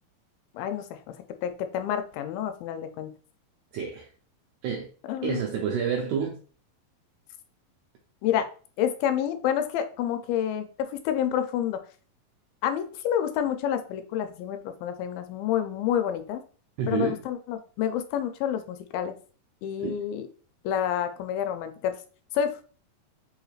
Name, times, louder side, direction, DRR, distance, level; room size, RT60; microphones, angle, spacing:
voice 1, 0.5-1.2 1.4-3.1 5.1-5.4 8.2-8.5 8.8-11.8 12.6-16.4 16.9-19.1 19.6-20.3 20.6-22.0 22.3-22.6, left 9 dB, 90° left, 8 dB, 2.4 m, -28 dB
voice 2, 3.7-4.1 4.6-4.9 5.2-6.4 16.8-17.2 19.8-20.0, right 7 dB, 85° right, 1 dB, 1.7 m, -29 dB
5.3 x 3.1 x 2.3 m, 0.40 s
omnidirectional pair, 4.1 m